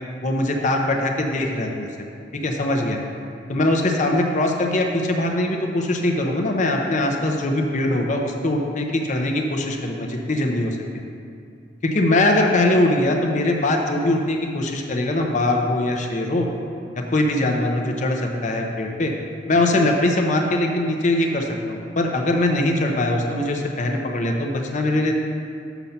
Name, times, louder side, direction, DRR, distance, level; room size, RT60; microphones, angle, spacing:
voice 1, 0.2-1.9 2.4-3.0 3.5-10.8 11.8-16.5 17.1-19.1 19.5-25.1, left 1 dB, 40° left, 2 dB, 0.7 m, -21 dB
7.0 x 5.3 x 5.8 m, 2.4 s
head